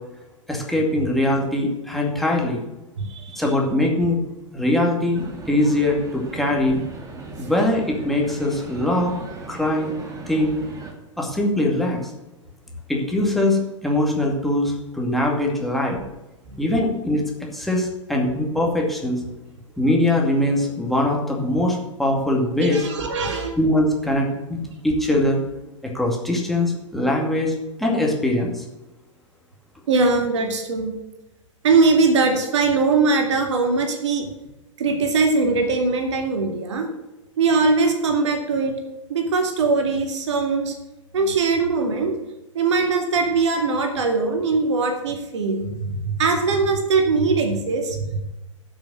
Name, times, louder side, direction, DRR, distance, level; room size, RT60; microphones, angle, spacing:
voice 1, 0.5-2.6 3.4-4.2 4.5-6.8 7.4-9.2 9.5-9.9 10.3-10.6 11.2-12.0 12.9-16.0 16.6-17.2 17.5-19.2 19.8-22.8 23.6-24.6 24.8-25.4 25.9-27.5 27.8-28.6, left 1 dB, ahead, -1 dB, 2.3 m, -22 dB
voice 2, 3.0-3.4 22.6-23.5 24.7-24.8 29.9-30.9 31.6-34.3 34.8-36.9 37.4-38.8 39.1-40.8 41.1-42.1 42.5-48.3, right 4 dB, 60° right, 4 dB, 2.2 m, -21 dB
sound 1, 5.1-10.9, right 3 dB, 20° right, 2.1 m, -38 dB
12.5 x 6.2 x 6.2 m, 1.0 s
figure-of-eight pair, 100°, 17 cm